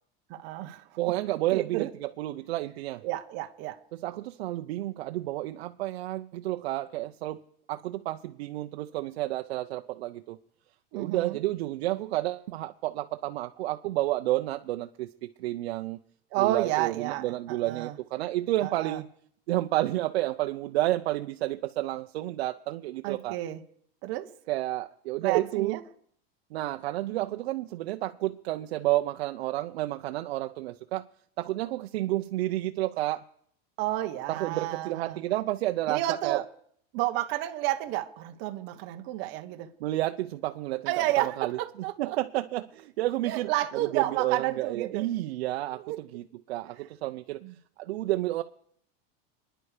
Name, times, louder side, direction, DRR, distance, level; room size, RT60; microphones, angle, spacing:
voice 1, 0.3-0.8 1.5-1.9 3.0-3.8 10.9-11.4 16.3-18.0 18.6-19.0 23.0-23.6 24.0-24.3 25.2-25.8 27.2-27.3 33.8-35.2 35.9-36.4 36.9-39.7 40.9-42.2 43.3-45.1 45.7-46.0 47.4-47.5, right 15 dB, 35° right, 1.0 m, -31 dB
voice 2, 1.0-3.0 3.9-7.4 7.7-10.4 10.9-16.0 16.4-19.1 19.5-23.4 24.5-25.8 26.5-31.0 31.4-33.2 34.3-36.4 39.8-41.6 42.0-47.4 47.8-48.4, right 16 dB, 80° right, 0.8 m, -30 dB
28.0 x 10.0 x 5.0 m
supercardioid pair, 175°, 31 cm